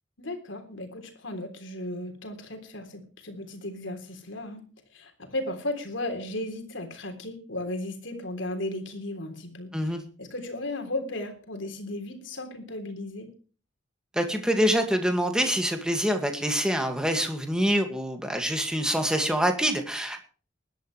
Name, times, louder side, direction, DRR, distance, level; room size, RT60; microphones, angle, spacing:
voice 1, 0.2-4.7 4.9-13.3, left 1 dB, 70° left, 6 dB, 3.5 m, -35 dB
voice 2, 14.1-20.2, equal, 5° right, 5 dB, 2.1 m, -25 dB
20.5 x 11.5 x 3.3 m, 0.38 s
head